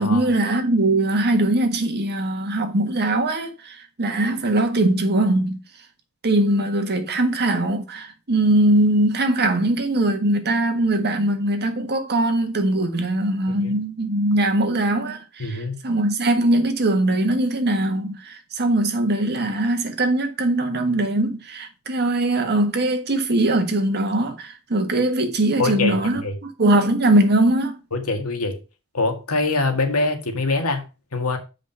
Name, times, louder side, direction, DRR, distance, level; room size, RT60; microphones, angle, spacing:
voice 1, 0.0-5.6 6.2-27.8, right 1 dB, 50° right, 1.6 m, -21 dB
voice 2, 15.4-15.8 25.6-26.3 27.9-28.6 28.9-30.8 31.1-31.4, left 3 dB, 90° left, 1.9 m, -23 dB
7.4 x 5.1 x 5.5 m
head